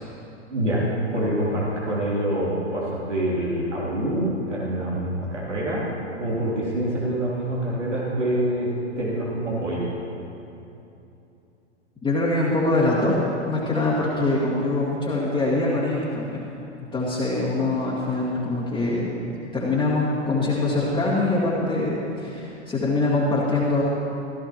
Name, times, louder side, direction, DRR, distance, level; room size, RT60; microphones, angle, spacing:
voice 1, 0.5-0.9 1.1-5.8 6.2-9.8, right 1 dB, 85° right, -7 dB, 3.2 m, -26 dB
voice 2, 12.0-13.1 13.5-16.5 16.9-19.1 19.5-23.9, left 2 dB, 15° left, -8 dB, 2.1 m, -23 dB
16.0 x 13.5 x 3.0 m, 2.8 s
figure-of-eight pair, 105°, 35 cm